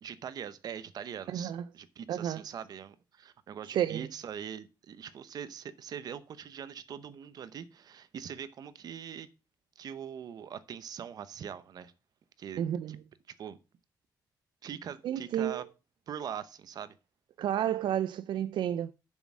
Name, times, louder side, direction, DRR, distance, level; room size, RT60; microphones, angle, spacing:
voice 1, 0.0-9.3 9.8-11.9 12.4-12.6 12.9-13.0 13.4-13.6 14.6-15.6 16.1-16.9, right 8 dB, 55° right, 0.7 m, -42 dB
voice 2, 1.3-1.6 2.1-2.4 3.7-4.1 12.6-13.0 15.0-15.6 17.4-18.9, right 10 dB, 80° right, 0.4 m, -31 dB
6.9 x 6.4 x 6.1 m
wide cardioid pair, 175°, 8 cm